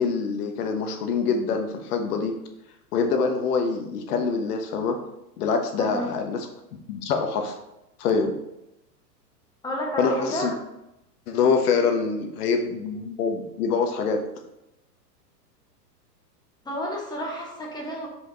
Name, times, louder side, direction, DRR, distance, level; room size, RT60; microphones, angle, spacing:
voice 1, 0.0-2.3 2.9-5.0 5.4-6.5 6.9-7.6 8.0-8.3 10.0-10.5 11.3-14.2, left 5 dB, 65° left, 5 dB, 1.3 m, -25 dB
voice 2, 5.8-6.1 9.6-10.5 16.6-18.1, left 1 dB, 10° left, -2 dB, 1.5 m, -30 dB
5.1 x 5.0 x 3.9 m, 0.88 s
hypercardioid pair, 120°, 50 cm